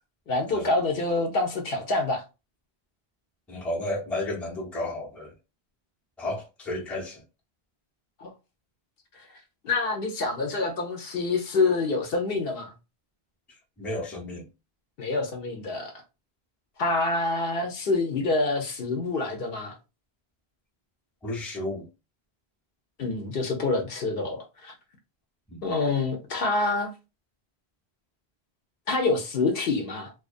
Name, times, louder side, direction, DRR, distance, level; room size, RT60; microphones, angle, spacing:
voice 1, 0.3-2.2 8.2-8.3 9.6-12.7 15.0-15.9 16.8-19.8 23.0-24.7 25.6-26.9 28.9-30.1, left 3 dB, 65° left, 0.8 m, -26 dB
voice 2, 3.5-5.3 6.2-7.2 13.8-14.5 21.2-21.9 25.5-25.6, left 1 dB, ahead, 0.5 m, -32 dB
2.4 x 2.2 x 2.4 m
omnidirectional pair, 1.1 m